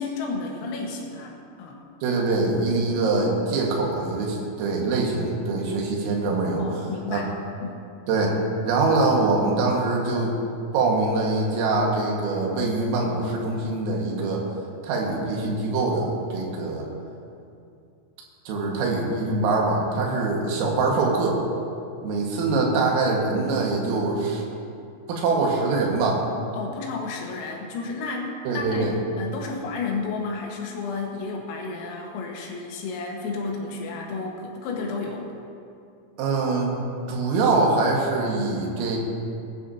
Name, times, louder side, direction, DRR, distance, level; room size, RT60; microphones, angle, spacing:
voice 1, 0.0-1.8 6.6-7.3 7.6-7.9 26.5-35.3, left 4 dB, 80° left, -1 dB, 4.1 m, -32 dB
voice 2, 2.0-6.6 7.1-7.2 8.1-8.4 8.6-10.3 10.7-14.5 14.8-16.9 18.5-21.4 22.0-24.4 25.1-26.2 28.5-28.9 36.2-36.8 37.1-39.0, right 3 dB, 80° right, -2 dB, 4.3 m, -23 dB
20.0 x 11.0 x 2.8 m, 2.5 s
omnidirectional pair, 5.9 m